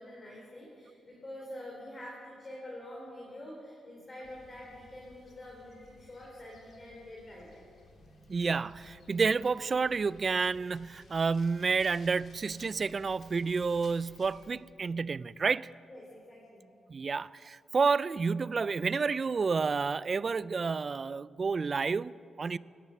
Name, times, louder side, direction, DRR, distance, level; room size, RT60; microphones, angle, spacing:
voice 1, 0.0-7.6 15.9-16.7, left 1 dB, 25° left, 3.3 m, -46 dB
sound 1, 4.2-14.5, left 3 dB, 55° left, 2.5 m, -58 dB
voice 2, 8.3-15.7 16.9-22.6, right 4 dB, 40° right, 0.3 m, -30 dB
17.5 x 11.0 x 6.8 m
cardioid pair, 105°, 0 cm